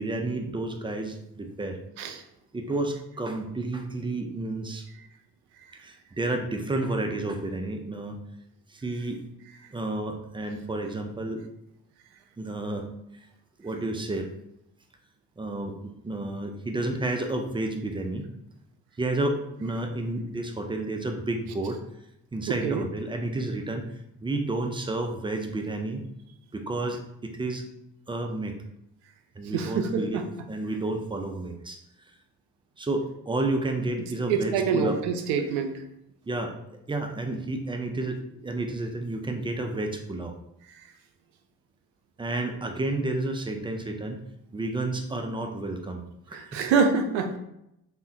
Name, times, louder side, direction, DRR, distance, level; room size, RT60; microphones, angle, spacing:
voice 1, 0.0-1.8 2.5-4.9 5.7-8.2 8.7-9.2 9.7-11.4 12.4-12.9 13.6-14.3 15.4-18.3 19.0-21.8 22.3-23.9 24.2-26.1 26.5-27.7 28.1-28.6 29.4-30.2 30.5-31.8 32.8-35.0 36.2-36.5 36.9-40.3 42.2-44.2 44.5-46.0 46.3-46.7, right 2 dB, 10° right, 4 dB, 0.4 m, -31 dB
voice 2, 22.5-22.8 29.5-30.2 34.3-35.8 46.3-47.4, right 5 dB, 65° right, 6 dB, 0.5 m, -26 dB
3.5 x 2.1 x 2.6 m, 0.82 s
hypercardioid pair, 45°, 43 cm